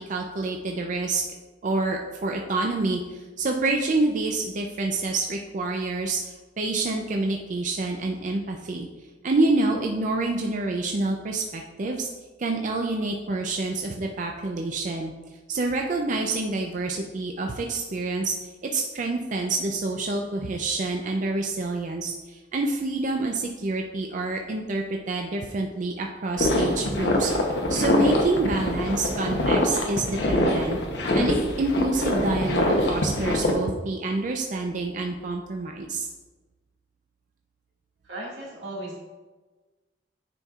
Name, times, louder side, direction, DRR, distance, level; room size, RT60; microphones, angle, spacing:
voice 1, 0.1-1.2 1.6-8.9 9.2-12.1 12.4-15.1 15.5-18.3 18.7-27.3 27.7-30.8 31.1-36.1, right 2 dB, 45° right, 2 dB, 0.4 m, -27 dB
sound 1, 26.4-33.5, left 1 dB, 75° left, 0.8 m, -24 dB
voice 2, 38.0-39.0, right 1 dB, 90° right, -4 dB, 1.9 m, -36 dB
9.7 x 4.4 x 2.4 m, 1.3 s
head